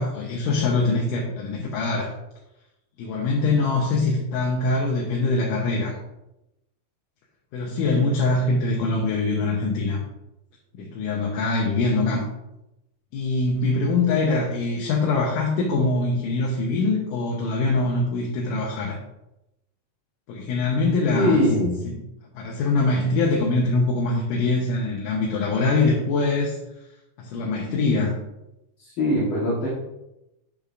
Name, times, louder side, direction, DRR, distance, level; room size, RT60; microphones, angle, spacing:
voice 1, 0.0-2.1 3.0-6.0 7.5-10.0 10.7-12.3 13.1-19.0 20.3-21.4 22.4-26.6 27.2-28.2, left 3 dB, 85° left, -2 dB, 2.5 m, -23 dB
voice 2, 21.1-21.8 28.8-29.7, left 1 dB, 50° left, -6 dB, 1.7 m, -22 dB
8.1 x 6.7 x 2.5 m, 0.91 s
omnidirectional pair, 3.6 m